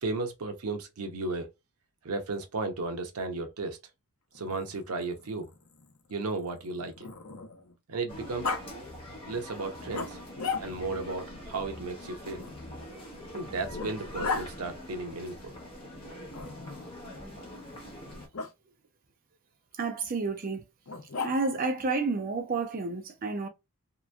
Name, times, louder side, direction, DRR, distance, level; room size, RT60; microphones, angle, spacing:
voice 1, 0.0-1.5 2.0-3.8 4.3-5.5 6.1-7.1 7.9-8.6 9.3-10.2 10.6-12.5 13.3-15.5, right 3 dB, 85° right, 0.7 m, -34 dB
Growling, 4.3-7.7 8.4-8.6 9.9-11.0 12.4-14.5 16.3-17.0 18.3-18.5 20.9-21.7, left 4 dB, 65° left, 0.7 m, -37 dB
sound 1, 8.1-18.3, left 1 dB, 25° left, 0.9 m, -43 dB
voice 2, 19.8-20.6 21.2-23.5, right 3 dB, 40° right, 0.5 m, -30 dB
2.9 x 2.5 x 2.2 m
head